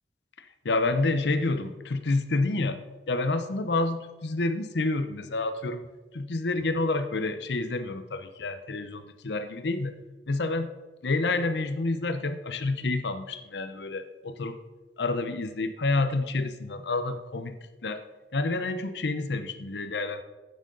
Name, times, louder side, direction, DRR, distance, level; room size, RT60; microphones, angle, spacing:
voice 1, 0.4-2.8 3.1-5.9 6.1-9.9 10.3-10.7 11.0-14.6 15.0-18.0 18.3-20.2, left 2 dB, 75° left, 10 dB, 0.7 m, -29 dB
13.0 x 9.0 x 3.9 m, 1.2 s
head